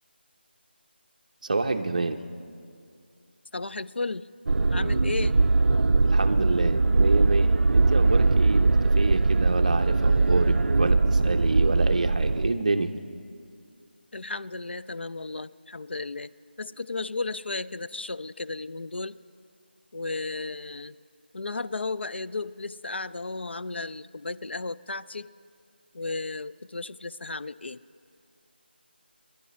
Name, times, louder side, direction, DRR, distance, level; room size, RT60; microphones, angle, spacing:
voice 1, 1.4-2.2 6.0-12.9, right 3 dB, 40° right, 7 dB, 0.7 m, -28 dB
voice 2, 3.5-4.3 4.7-5.4 14.1-16.3 16.6-19.2 19.9-21.0 21.3-25.3 25.9-27.8, left 3 dB, 85° left, 15 dB, 0.4 m, -34 dB
sound 1, 4.5-12.5, right 3 dB, 90° right, 0.4 m, -21 dB
27.0 x 11.0 x 4.2 m, 2.3 s
figure-of-eight pair, 175°, 6 cm